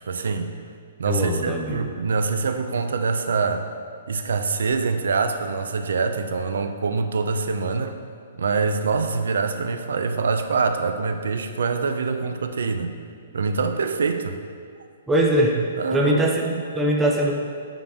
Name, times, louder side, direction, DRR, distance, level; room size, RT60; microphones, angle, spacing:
voice 1, 0.1-0.5 1.0-3.7 4.1-7.9 8.3-12.9 13.3-14.4 15.8-16.6, right 4 dB, 80° right, 7 dB, 0.5 m, -25 dB
voice 2, 1.1-1.8 15.1-15.6 15.9-17.3, right 1 dB, 5° right, -2 dB, 0.4 m, -21 dB
9.0 x 3.5 x 3.5 m, 2.2 s
hypercardioid pair, 180°, 0 cm